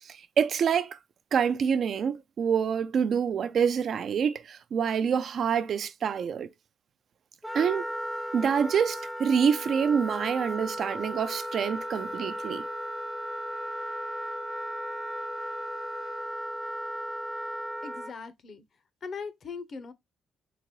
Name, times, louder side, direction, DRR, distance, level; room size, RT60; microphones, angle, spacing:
voice 1, 0.0-1.0 1.3-6.5 7.5-7.9 8.3-12.7, right 7 dB, 60° right, 0.3 m, -26 dB
Wind instrument woodwind instrument, 7.4-18.1, equal, ahead, 0.5 m, -35 dB
sound 1, 11.1-16.3, left 8 dB, 80° left, 1.0 m, -50 dB
voice 2, 17.8-18.6 19.0-19.9, left 5 dB, 50° left, 0.7 m, -39 dB
3.8 x 3.0 x 2.9 m
cardioid pair, 90°, 0 cm